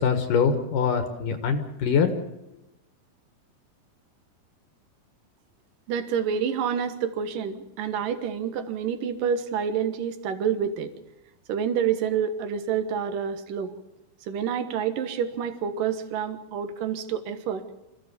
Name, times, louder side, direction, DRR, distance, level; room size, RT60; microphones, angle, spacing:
voice 1, 0.0-2.1, left 6 dB, 70° left, 8 dB, 3.0 m, -23 dB
voice 2, 5.9-10.9 11.5-13.7 14.3-17.6, right 7 dB, 70° right, 10 dB, 3.0 m, -28 dB
26.0 x 16.0 x 7.1 m, 0.92 s
omnidirectional pair, 4.1 m